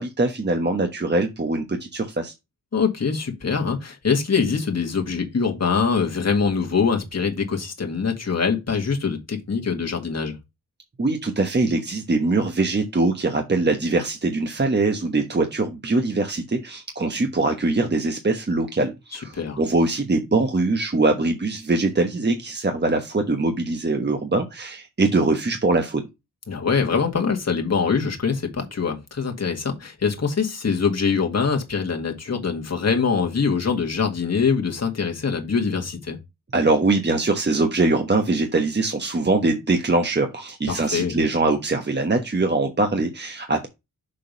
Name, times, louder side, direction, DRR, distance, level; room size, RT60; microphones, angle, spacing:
voice 1, 0.0-2.3 11.0-26.0 36.5-43.7, right 3 dB, 30° right, 1.2 m, -22 dB
voice 2, 2.7-10.4 19.1-19.6 26.5-36.2 40.7-41.2, left 5 dB, 50° left, 2.0 m, -23 dB
6.8 x 3.7 x 5.2 m
wide cardioid pair, 70°, 34 cm